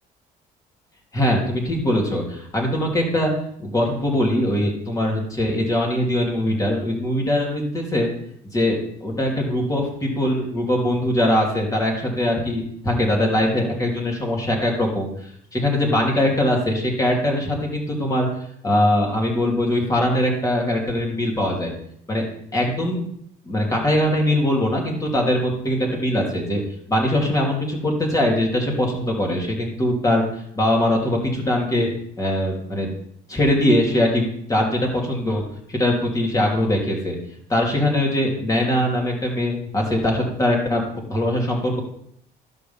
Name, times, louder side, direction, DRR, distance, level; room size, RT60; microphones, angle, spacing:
voice 1, 1.1-3.3 3.6-8.1 8.5-15.1 15.5-18.3 18.6-21.7 22.1-22.3 22.5-23.0 23.4-26.6 26.9-31.9 32.2-32.9 33.3-35.4 35.7-37.2 37.5-40.8 41.1-41.8, left 1 dB, 20° left, -1 dB, 3.2 m, -21 dB
11.5 x 4.0 x 7.2 m, 0.67 s
cardioid pair, 110°, 17 cm